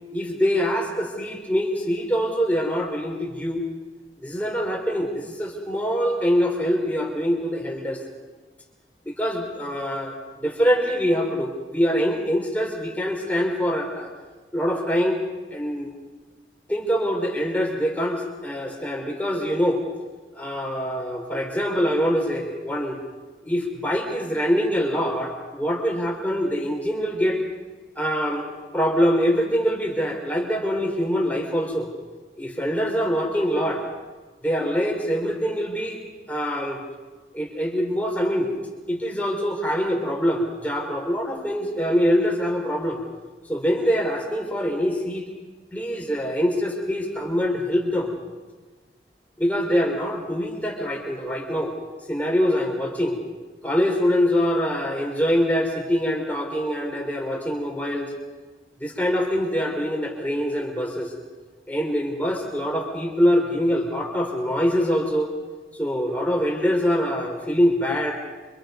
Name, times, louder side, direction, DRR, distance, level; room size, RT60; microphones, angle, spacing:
voice 1, 0.1-3.6 4.2-8.0 9.0-14.1 14.5-15.2 15.5-15.9 16.7-19.8 20.3-23.0 23.4-27.4 27.9-28.5 28.7-31.9 32.4-33.8 34.4-36.0 36.3-36.8 37.3-38.5 38.9-43.0 43.5-45.3 45.7-48.1 49.4-51.7 52.1-53.2 53.6-58.1 58.8-61.1 61.7-65.3 65.7-68.2, equal, 10° left, 0 dB, 5.0 m, -24 dB
30.0 x 27.0 x 5.5 m, 1.3 s
head